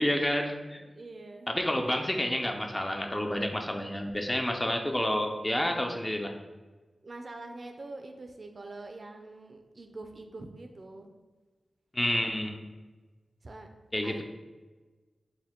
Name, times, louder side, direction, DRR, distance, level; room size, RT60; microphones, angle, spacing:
voice 1, 0.0-0.8 1.5-6.3 11.9-12.6 13.9-14.2, left 1 dB, 20° left, 3 dB, 0.4 m, -29 dB
voice 2, 0.8-1.5 7.0-11.1 13.4-13.7 14.0-14.2, right 2 dB, 50° right, 5 dB, 0.4 m, -44 dB
4.3 x 2.1 x 3.6 m, 1.3 s
wide cardioid pair, 80°, 0 cm